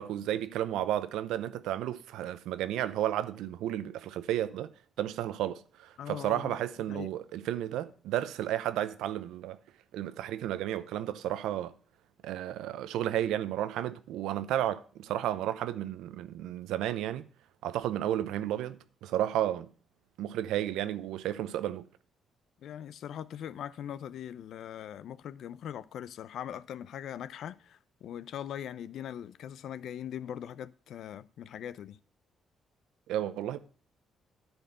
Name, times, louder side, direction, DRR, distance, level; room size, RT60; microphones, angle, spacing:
voice 1, 0.0-4.7 5.0-9.6 9.9-11.7 12.2-17.3 17.6-19.7 20.2-21.9 33.1-33.6, right 12 dB, 90° right, 0.7 m, -32 dB
voice 2, 6.0-6.6 6.9-7.1 22.6-32.0, left 10 dB, 75° left, 0.5 m, -41 dB
10.5 x 4.5 x 7.9 m
cardioid pair, 90°, 0 cm